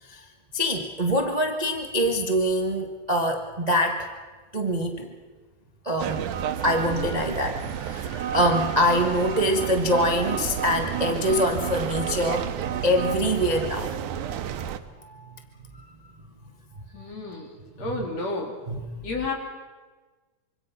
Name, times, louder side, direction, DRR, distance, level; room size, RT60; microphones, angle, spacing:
voice 1, 0.5-4.1 4.5-5.1 5.8-12.5 12.8-13.9 15.0-15.3 17.8-17.9 18.7-18.8, equal, 65° right, 3 dB, 0.4 m, -24 dB
sound 1, 6.0-14.8, right 9 dB, 85° right, 2.5 m, -31 dB
voice 2, 16.9-17.5 17.8-18.6 19.0-19.3, left 3 dB, 55° left, 1 dB, 4.7 m, -31 dB
25.5 x 25.5 x 5.9 m, 1.3 s
omnidirectional pair, 3.5 m